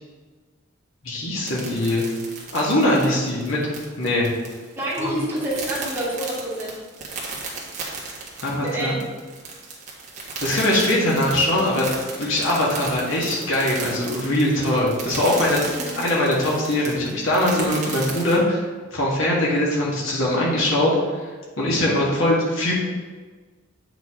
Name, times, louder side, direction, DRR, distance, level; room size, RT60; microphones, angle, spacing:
voice 1, 1.0-2.1 2.5-3.6 4.0-4.3 5.0-5.2 8.4-8.9 10.4-15.6 15.9-18.6 18.9-21.0 21.6-22.7, left 1 dB, 90° left, -5 dB, 1.8 m, -21 dB
sound 1, 1.5-18.4, right 4 dB, 35° right, 1.6 m, -35 dB
voice 2, 4.8-6.8 8.6-9.0 15.6-16.0, right 1 dB, 10° right, -8 dB, 2.5 m, -28 dB
8.7 x 6.0 x 3.7 m, 1.4 s
head